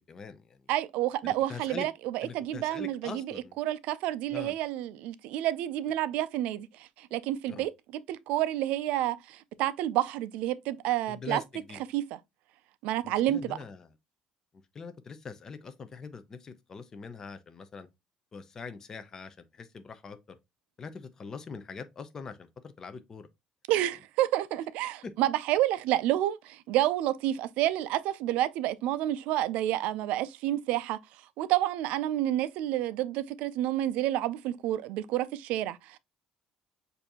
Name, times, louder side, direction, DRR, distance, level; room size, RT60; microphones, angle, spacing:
voice 1, 0.1-0.6 1.2-1.9 2.2-3.6 4.3-4.5 7.5-7.7 11.1-11.8 13.0-13.9 14.7-17.9 18.3-20.4 20.8-23.3 25.0-25.1, left 5 dB, 25° left, 0.5 m, -43 dB
voice 2, 0.7-6.7 7.0-7.7 8.1-11.4 11.9-12.0 12.8-13.6 23.7-31.0 31.4-36.0, right 13 dB, 80° right, 0.4 m, -29 dB
6.7 x 2.6 x 2.8 m
cardioid pair, 155°, 2 cm